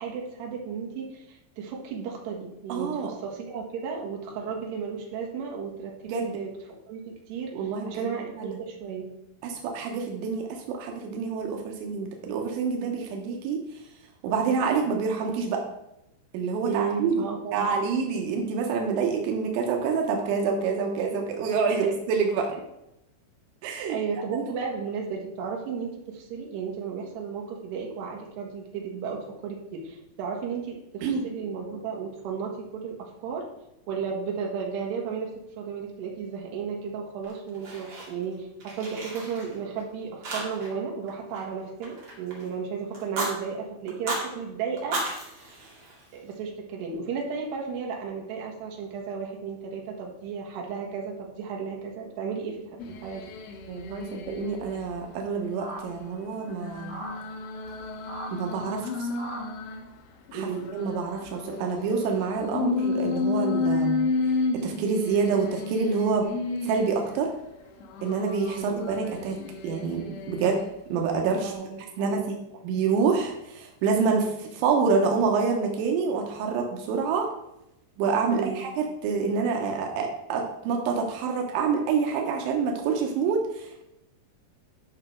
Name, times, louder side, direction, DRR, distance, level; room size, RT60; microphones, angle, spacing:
voice 1, 0.0-6.5 6.9-7.0 7.3-9.1 16.6-17.7 21.7-21.9 23.9-33.5 33.9-35.3 35.6-45.0 46.1-52.6 52.9-53.2 60.3-60.7 68.6-68.8 71.4-72.4 78.3-78.6, right 6 dB, 70° right, -1 dB, 3.6 m, -34 dB
voice 2, 2.7-3.1 6.1-6.4 7.5-8.1 8.4-8.6 9.4-13.6 14.2-15.6 16.3-17.3 17.5-22.5 23.6-24.0 24.3-24.4 31.0-31.3 53.7-56.9 58.3-59.1 60.3-64.0 64.5-66.3 66.6-67.3 68.0-71.5 72.0-72.2 72.6-77.3 78.0-83.8, right 5 dB, 90° right, 1 dB, 3.4 m, -27 dB
Fire, 37.2-38.3 38.6-39.8 40.2-40.8 41.1-42.5 42.9-43.3 43.9-44.3 44.8-46.3, right 2 dB, 40° right, 2.6 m, -34 dB
sound 1, 52.8-54.9 55.3-59.8 60.3-67.3 67.8-70.7 71.2-71.5, left 4 dB, 80° left, 3.1 m, -32 dB
sound 2, 55.6-55.8 56.9-57.1 57.6-57.7 58.1-58.3 58.6-58.7 59.2-59.4 60.5-60.6 61.1-61.2, right 2 dB, 25° right, 0.6 m, -38 dB
11.5 x 5.9 x 4.5 m, 0.85 s
omnidirectional pair, 5.2 m